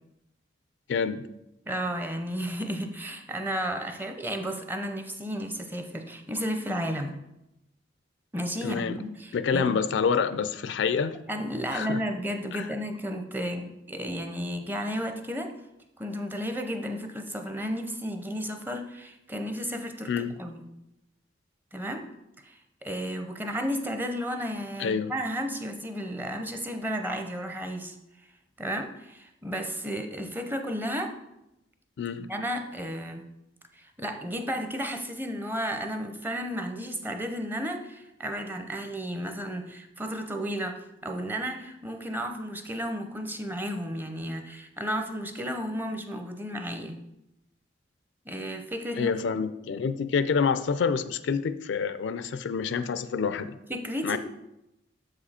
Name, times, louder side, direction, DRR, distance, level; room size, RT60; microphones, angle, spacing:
voice 1, 0.9-1.3 8.6-9.0 9.3-11.2 11.7-12.0 12.5-12.7 20.1-20.3 24.8-25.1 32.0-32.3 49.0-53.5 54.0-54.2, left 6 dB, 75° left, 13 dB, 0.4 m, -27 dB
voice 2, 1.7-7.2 8.3-9.8 11.3-15.5 16.0-20.6 21.7-22.1 22.4-27.9 28.6-31.1 32.2-33.2 33.7-47.0 48.2-49.1 53.7-54.2, equal, 10° right, 5 dB, 0.6 m, -33 dB
7.1 x 4.9 x 4.2 m, 0.88 s
head